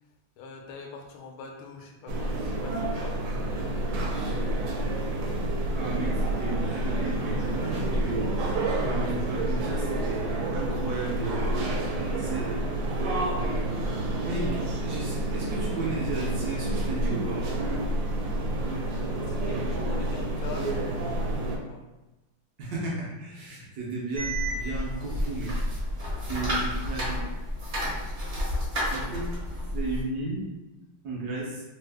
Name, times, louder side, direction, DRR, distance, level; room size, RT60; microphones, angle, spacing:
voice 1, 0.4-3.9 12.4-12.7 18.2-18.3 19.2-21.8 26.4-27.2, left 5 dB, 85° left, 2 dB, 1.4 m, -45 dB
sound 1, 2.1-21.6, right 1 dB, 85° right, 1.4 m, -29 dB
voice 2, 5.7-8.3 8.8-11.5 12.2-12.6 14.2-17.5 22.6-25.6 26.2-27.3 28.5-28.6 28.9-30.5 31.0-31.6, right 2 dB, 70° right, -4 dB, 0.9 m, -34 dB
sound 2, 24.1-30.0, equal, 45° right, 0.6 m, -30 dB
3.5 x 2.0 x 3.3 m, 1.1 s
omnidirectional pair, 2.3 m